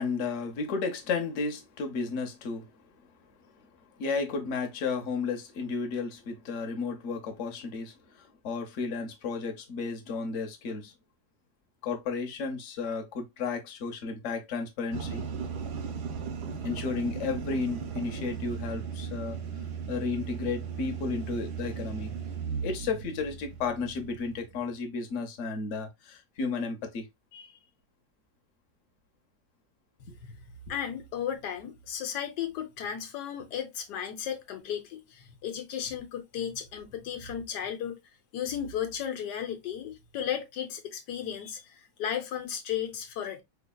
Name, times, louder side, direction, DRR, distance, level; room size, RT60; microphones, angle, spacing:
voice 1, 0.0-2.7 3.4-3.5 4.0-10.9 11.8-15.2 16.6-19.4 19.9-22.1 22.6-27.6, left 4 dB, 55° left, 1.0 m, -33 dB
sound 1, 14.9-24.6, right 6 dB, 80° right, 1.3 m, -37 dB
voice 2, 30.0-30.4 30.7-38.0 38.3-43.4, left 9 dB, 85° left, 1.4 m, -35 dB
3.9 x 3.3 x 2.2 m
omnidirectional pair, 1.7 m